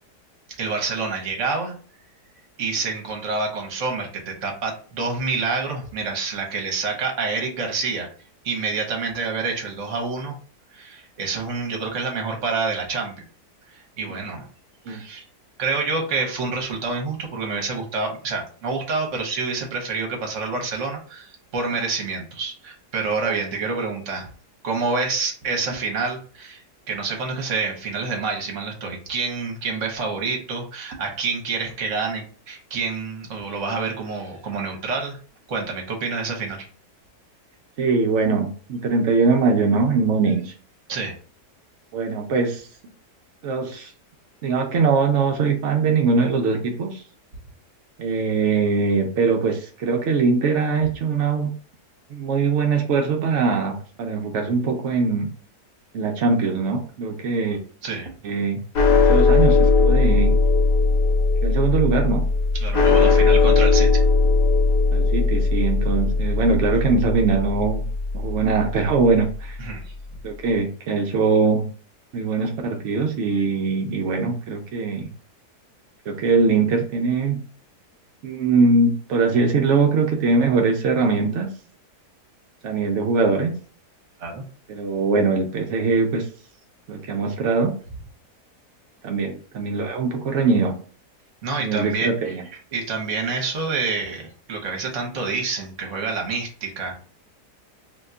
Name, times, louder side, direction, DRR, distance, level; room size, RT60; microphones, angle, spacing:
voice 1, 0.6-1.7 2.6-8.1 8.4-10.3 10.7-13.1 13.7-14.5 14.9-15.2 15.6-24.3 24.6-35.2 35.5-36.7 40.9-41.1 57.8-58.1 62.6-64.0 69.6-69.8 84.2-84.4 91.4-92.4 92.7-96.9, right 4 dB, 55° right, 1 dB, 1.0 m, -27 dB
voice 2, 37.8-40.5 41.9-42.7 43.4-43.9 44.4-47.0 48.0-51.5 52.1-55.3 55.9-57.6 58.2-58.6 59.1-60.4 61.4-62.2 63.0-63.3 64.9-67.9 68.1-69.6 70.2-71.7 72.1-75.1 76.1-77.4 78.2-81.5 82.6-83.5 84.7-86.3 86.9-87.7 89.0-90.8 91.6-92.4, right 4 dB, 70° right, 2 dB, 0.7 m, -22 dB
sound 1, 58.7-69.2, left 4 dB, 85° left, 1.2 m, -18 dB
2.8 x 2.2 x 3.6 m, 0.41 s
omnidirectional pair, 1.8 m